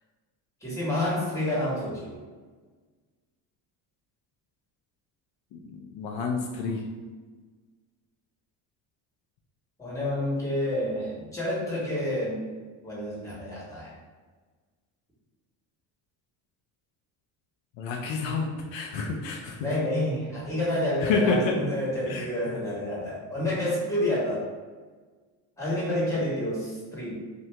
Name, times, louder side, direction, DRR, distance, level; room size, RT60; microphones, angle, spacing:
voice 1, 0.6-2.1 9.8-12.4 12.8-13.9 19.6-24.4 25.6-27.1, left 1 dB, 5° left, -6 dB, 1.4 m, -29 dB
voice 2, 5.5-6.8 17.8-19.6 21.0-21.6 22.1-22.3, left 4 dB, 70° left, 0 dB, 0.6 m, -29 dB
2.9 x 2.6 x 3.2 m, 1.4 s
cardioid pair, 95°, 47 cm